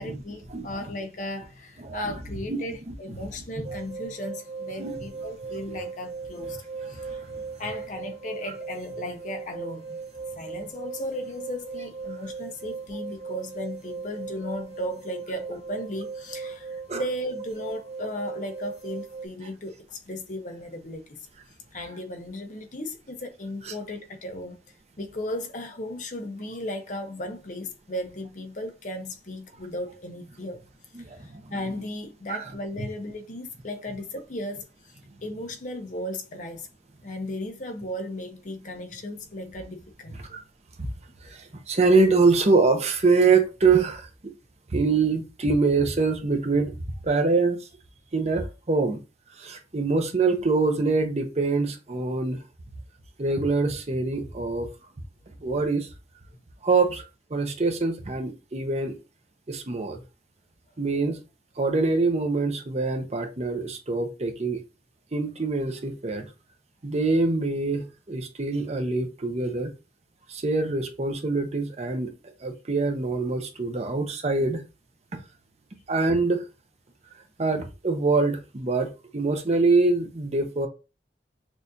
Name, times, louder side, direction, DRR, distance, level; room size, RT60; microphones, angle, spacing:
voice 1, 0.0-6.6 6.9-7.2 7.6-9.9 10.4-21.2 21.7-24.6 25.0-30.6 31.2-34.9 35.2-36.7 37.0-40.4, left 1 dB, 45° left, 0.7 m, -36 dB
voice 2, 2.5-2.9 4.8-4.9 6.9-7.1 16.9-17.0 23.7-23.8 30.9-31.4 32.3-32.4 40.3-40.4 40.8-40.9 41.2-44.1 44.7-46.7 47.0-47.6 48.1-49.0 49.4-52.4 53.2-54.7 55.4-55.9 56.6-59.0 59.5-60.0 60.8-61.2 61.6-64.6 65.1-66.3 66.8-69.7 70.3-72.1 72.4-74.6 75.9-76.4 77.4-80.7, right 3 dB, 40° right, 0.7 m, -24 dB
sound 1, 3.6-19.3, right 5 dB, 80° right, 1.7 m, -38 dB
6.2 x 2.5 x 2.7 m
head